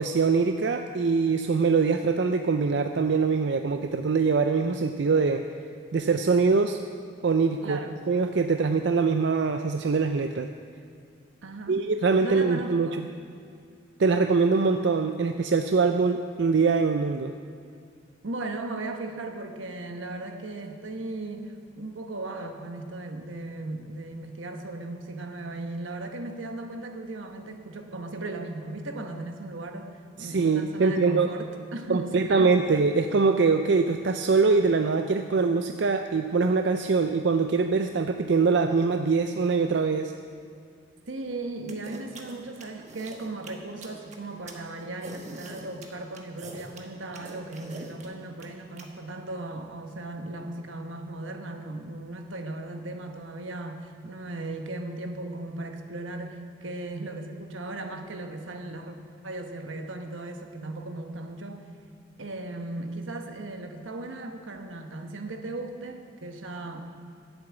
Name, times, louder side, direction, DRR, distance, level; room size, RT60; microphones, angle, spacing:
voice 1, 0.0-5.4 5.9-6.8 7.2-7.8 8.1-10.5 11.7-12.9 14.0-17.3 30.2-31.3 31.9-40.1, right 4 dB, 60° right, 7 dB, 0.4 m, -23 dB
voice 2, 7.6-8.0 11.4-11.8 12.2-13.0 18.2-32.6 41.1-59.0 59.2-61.6 62.2-67.1, right 2 dB, 85° right, 5 dB, 1.1 m, -37 dB
sound 1, 41.7-48.9, right 2 dB, 40° right, 1.3 m, -43 dB
10.5 x 8.1 x 8.2 m, 2.3 s
head